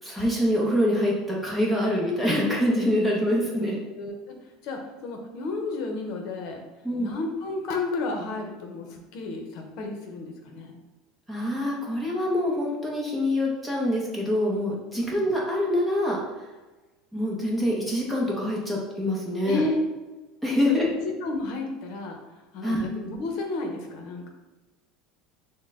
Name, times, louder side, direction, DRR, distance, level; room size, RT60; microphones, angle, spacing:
voice 1, 0.0-3.8 6.8-7.1 11.3-16.2 17.1-19.6 20.4-20.9 22.6-22.9, left 1 dB, 5° right, -4 dB, 0.8 m, -25 dB
voice 2, 3.9-6.6 7.0-10.8 14.9-15.1 19.4-19.8 20.7-22.2 22.5-24.3, left 2 dB, 50° left, 3 dB, 0.8 m, -32 dB
6.2 x 2.2 x 3.6 m, 1.2 s
cardioid pair, 165°, 0 cm